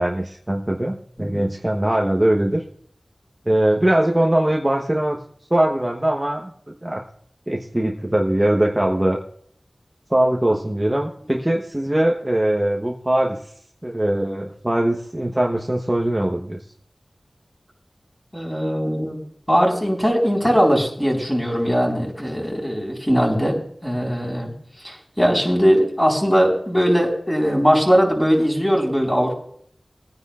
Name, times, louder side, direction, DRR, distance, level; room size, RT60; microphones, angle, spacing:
voice 1, 0.0-2.6 3.5-5.2 5.5-7.0 7.5-9.2 10.1-13.4 13.8-16.6, right 1 dB, 20° right, 0 dB, 1.1 m, -21 dB
voice 2, 18.3-19.2 19.5-24.5 24.8-29.4, equal, 10° left, -1 dB, 4.5 m, -20 dB
21.5 x 9.8 x 2.5 m, 0.64 s
wide cardioid pair, 60°, 0 cm